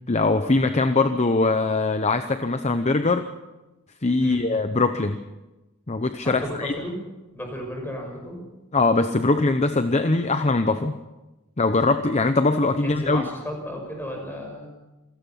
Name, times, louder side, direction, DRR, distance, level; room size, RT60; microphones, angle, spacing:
voice 1, 0.1-3.3 4.0-5.2 5.9-6.7 8.7-11.0 11.6-13.2, left 3 dB, 30° left, 8 dB, 0.8 m, -21 dB
voice 2, 6.2-7.0 7.3-8.4 12.8-14.7, equal, 10° left, 2 dB, 5.9 m, -33 dB
27.5 x 17.5 x 5.7 m, 1.1 s
head